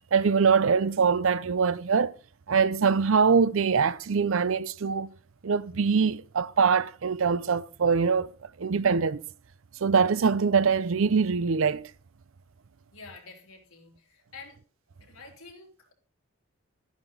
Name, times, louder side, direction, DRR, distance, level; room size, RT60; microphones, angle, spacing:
voice 1, 0.1-2.1 2.5-5.1 5.4-8.3 8.6-9.2 9.8-11.9, right 5 dB, 70° right, 0.6 m, -23 dB
voice 2, 12.9-14.6 15.0-15.9, left 4 dB, 90° left, 3.2 m, -48 dB
12.0 x 10.5 x 4.0 m
head